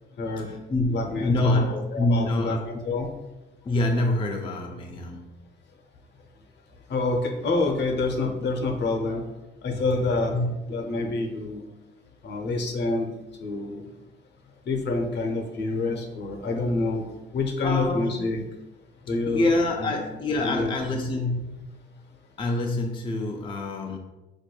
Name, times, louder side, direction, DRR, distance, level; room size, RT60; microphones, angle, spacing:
voice 1, 0.4-2.7 3.6-5.3 9.7-10.5 17.6-18.3 19.3-21.8 22.4-24.0, left 2 dB, 25° left, 2 dB, 0.4 m, -26 dB
voice 2, 0.9-3.1 6.9-9.2 9.6-10.3 10.7-11.7 12.2-13.1 13.4-13.8 14.6-17.1 17.3-18.4 19.1-19.4 19.8-19.9 20.4-20.7, left 3 dB, 60° left, 2 dB, 0.7 m, -27 dB
4.4 x 2.6 x 2.2 m, 1.0 s
cardioid pair, 90°, 20 cm